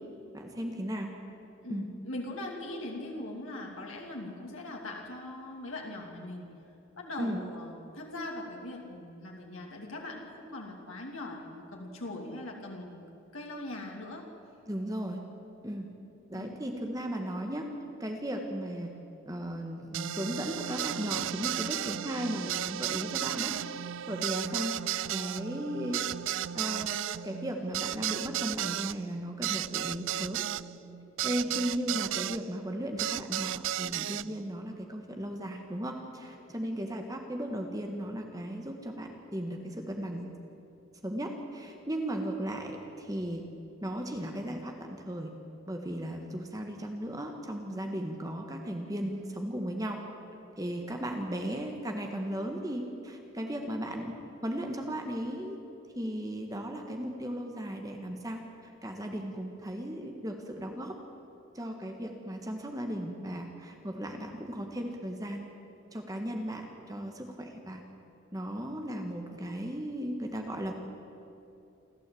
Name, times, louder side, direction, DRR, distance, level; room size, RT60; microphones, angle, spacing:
voice 1, 0.3-1.1 1.7-1.9 7.2-7.4 14.7-15.2 15.6-15.9 16.3-17.7 18.0-19.0 19.2-23.5 24.1-24.8 25.1-26.1 26.5-27.0 27.2-30.4 31.2-40.3 41.0-43.5 43.8-45.3 45.7-50.0 50.6-54.2 54.4-55.6 55.9-58.4 58.8-61.0 61.5-65.4 65.9-67.8 68.3-70.7, equal, 15° right, 3 dB, 1.6 m, -36 dB
voice 2, 1.6-6.6 6.9-13.0 13.3-14.3 16.3-16.5, left 1 dB, 85° left, 0 dB, 2.8 m, -41 dB
sound 1, 19.9-32.4 33.0-34.3, right 11 dB, 70° right, 0.4 m, -34 dB
28.0 x 13.0 x 8.6 m, 2.8 s
head